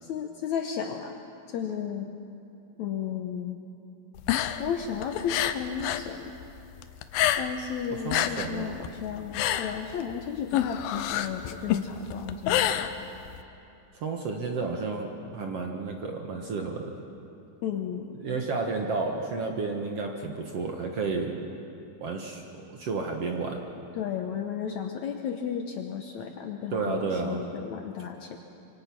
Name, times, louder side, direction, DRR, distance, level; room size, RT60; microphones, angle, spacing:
voice 1, 0.0-1.2 1.5-2.1 2.8-3.6 4.6-6.3 7.3-13.0 17.6-18.2 23.9-28.4, left 8 dB, 70° left, 4 dB, 1.8 m, -34 dB
sound 1, 4.2-6.1 6.4-7.7 8.0-13.4, left 11 dB, 90° left, 2.6 m, -28 dB
voice 2, 8.0-8.8 13.9-16.9 18.2-21.4 22.0-23.6 26.7-27.4, right 4 dB, 55° right, 2 dB, 1.8 m, -31 dB
25.5 x 25.0 x 6.0 m, 2.8 s
omnidirectional pair, 4.2 m